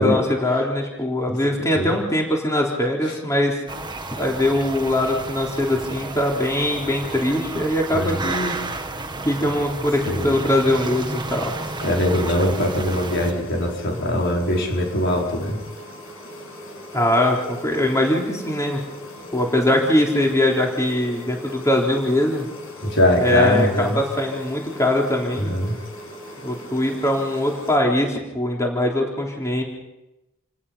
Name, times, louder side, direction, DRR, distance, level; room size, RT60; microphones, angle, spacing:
voice 1, 0.0-3.6 4.1-8.6 9.3-11.5 16.9-18.9 19.3-22.5 23.2-25.5 26.4-29.6, left 1 dB, 15° left, -1 dB, 3.6 m, -22 dB
sound 1, 3.7-13.3, right 2 dB, 20° right, 1.6 m, -32 dB
voice 2, 7.9-8.2 10.0-10.4 11.8-15.6 22.8-24.0 25.3-25.8, left 1 dB, 60° left, 0 dB, 5.1 m, -21 dB
sound 2, 11.6-27.8, left 1 dB, 75° left, 6.8 m, -39 dB
29.0 x 18.5 x 5.6 m, 0.96 s
head